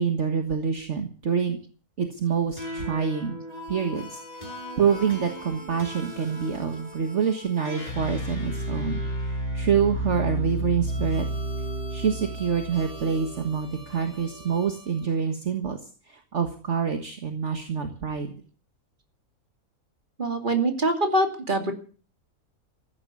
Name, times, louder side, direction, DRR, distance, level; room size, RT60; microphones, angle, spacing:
voice 1, 0.0-1.6 2.0-3.4 3.7-11.3 11.9-15.8 16.1-18.3, right 6 dB, 55° right, 5 dB, 1.9 m, -27 dB
sound 1, 2.6-15.1, equal, 25° left, 7.0 m, -33 dB
voice 2, 20.2-21.7, right 1 dB, 35° right, 5 dB, 2.7 m, -24 dB
15.0 x 11.0 x 8.4 m, 0.40 s
omnidirectional pair, 1.5 m